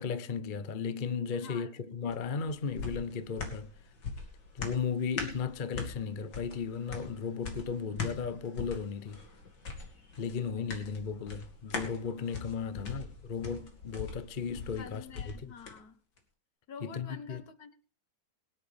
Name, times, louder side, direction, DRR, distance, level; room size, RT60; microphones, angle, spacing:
voice 1, 0.0-3.7 4.5-9.2 10.2-15.0 15.4-15.5 16.8-17.4, left 6 dB, 40° left, 0.7 m, -35 dB
voice 2, 1.3-1.7 12.7-12.9 14.7-16.0 16.7-17.7, left 6 dB, 65° left, 1.8 m, -48 dB
sound 1, 2.1-15.8 16.2-16.3, left 4 dB, 90° left, 2.8 m, -42 dB
22.5 x 10.0 x 3.5 m
omnidirectional pair, 1.8 m